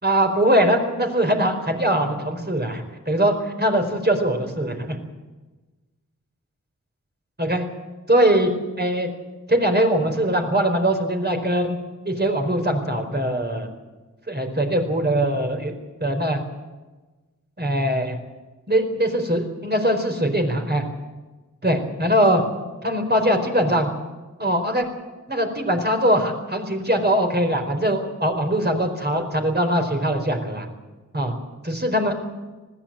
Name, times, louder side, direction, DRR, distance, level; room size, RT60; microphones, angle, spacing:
voice 1, 0.0-5.0 7.4-7.7 8.1-8.5 8.8-9.1 9.5-11.8 12.0-13.7 14.3-15.7 16.0-16.4 17.6-18.2 18.7-20.8 21.6-22.4 22.8-23.9 24.4-24.9 25.3-30.7 31.1-31.3 31.6-32.1, right 1 dB, 30° right, 4 dB, 4.5 m, -21 dB
20.0 x 15.5 x 9.0 m, 1.2 s
cardioid pair, 40°, 32 cm